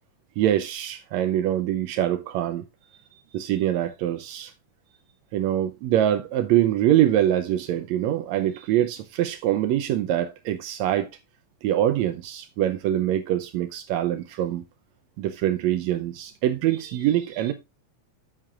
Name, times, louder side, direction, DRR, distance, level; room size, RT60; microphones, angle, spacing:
voice 1, 0.4-2.6 3.3-4.5 5.3-11.1 11.6-14.6 15.2-17.5, right 12 dB, 90° right, 1.5 m, -24 dB
9.4 x 7.5 x 2.4 m
omnidirectional pair, 3.9 m